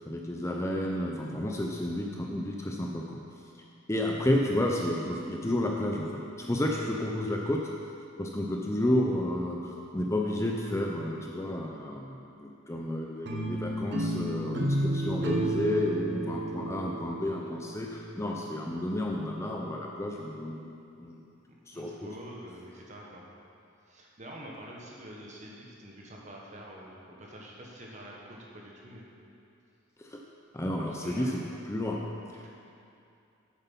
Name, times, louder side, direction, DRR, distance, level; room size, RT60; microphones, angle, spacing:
voice 1, 0.0-3.2 3.9-7.6 8.2-21.2 21.7-22.1 30.0-30.2 30.5-32.0 32.3-32.4, left 1 dB, 15° left, 0 dB, 0.5 m, -31 dB
sound 1, 13.2-18.3, right 1 dB, 55° right, 0.9 m, -32 dB
voice 2, 21.7-23.2 23.9-29.1 30.9-31.3 32.4-32.5, equal, 35° right, -3 dB, 1.4 m, -46 dB
8.3 x 7.9 x 5.6 m, 2.6 s
head